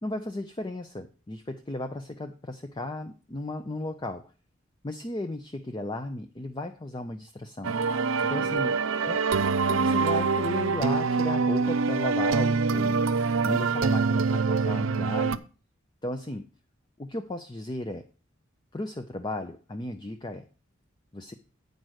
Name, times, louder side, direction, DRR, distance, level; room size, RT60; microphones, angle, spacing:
voice 1, 0.0-4.3 4.8-7.8 8.2-8.8 9.0-9.2 9.7-13.0 13.4-15.4 16.0-16.4 17.0-18.0 18.7-20.5 21.1-21.3, left 1 dB, 20° left, 7 dB, 0.5 m, -35 dB
sound 1, 7.6-15.4, right 4 dB, 70° right, 0.5 m, -25 dB
9.0 x 5.3 x 6.3 m, 0.37 s
head